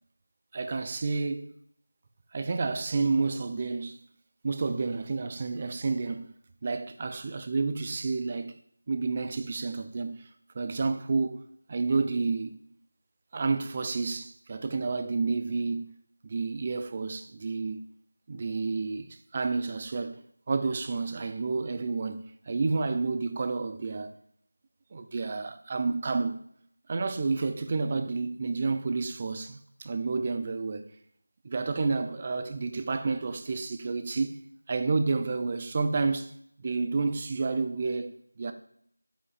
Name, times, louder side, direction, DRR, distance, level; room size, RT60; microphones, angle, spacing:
voice 1, 0.5-1.5 2.3-4.0 4.4-6.3 6.6-8.5 8.9-10.3 10.5-11.4 11.7-12.6 13.3-15.9 16.2-17.9 18.3-20.2 20.5-24.1 24.9-26.4 26.9-30.8 31.4-34.4 34.7-36.3 36.6-38.5, right 4 dB, 20° right, 0.4 m, -30 dB
13.0 x 7.2 x 2.5 m
figure-of-eight pair, 175°, 0 cm